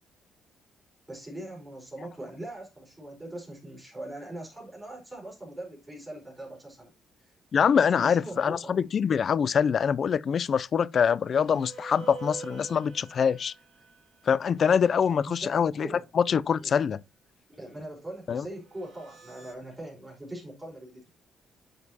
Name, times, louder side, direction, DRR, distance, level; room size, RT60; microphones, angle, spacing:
voice 1, 1.1-6.9 7.2-7.3 7.9-8.9 15.0-16.8 17.5-21.1, right 1 dB, 15° right, 4.8 m, -41 dB
voice 2, 7.5-13.5 14.3-15.9 16.1-17.0 18.3-18.4, left 7 dB, 50° left, 0.4 m, -24 dB
sound 1, 11.2-15.6 18.6-19.5, right 5 dB, 55° right, 3.3 m, -46 dB
9.9 x 6.5 x 2.8 m
cardioid pair, 90°, 0 cm